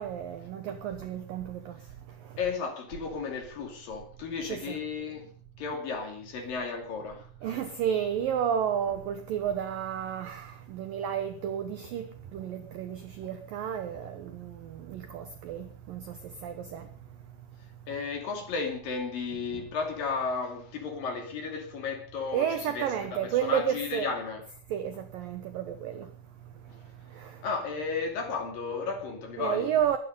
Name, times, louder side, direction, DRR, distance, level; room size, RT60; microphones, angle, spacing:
voice 1, 0.0-1.8 4.5-4.8 7.4-16.9 22.3-24.1 24.7-26.1 27.1-27.4 29.4-30.0, right 9 dB, 85° right, 2.0 m, -32 dB
voice 2, 2.4-5.3 5.6-7.6 17.9-24.5 26.7-26.8 27.4-29.7, left 5 dB, 50° left, 3.9 m, -34 dB
22.5 x 10.5 x 5.5 m
omnidirectional pair, 5.7 m